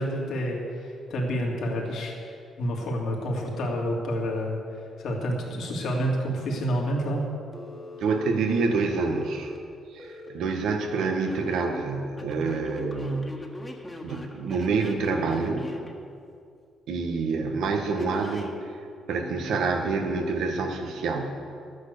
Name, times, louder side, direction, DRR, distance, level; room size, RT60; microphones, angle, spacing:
voice 1, 0.0-7.3, equal, 70° left, -1 dB, 2.7 m, -29 dB
Telephone, 7.5-10.3 11.0-11.6 12.2-15.9 18.0-18.5, left 2 dB, 15° left, 1.7 m, -42 dB
voice 2, 8.0-9.5 9.9-13.3 14.0-15.8 16.9-18.5 19.1-21.5, right 4 dB, 80° right, 4 dB, 1.6 m, -27 dB
12.5 x 9.5 x 6.8 m, 2.4 s
cardioid pair, 90°, 0 cm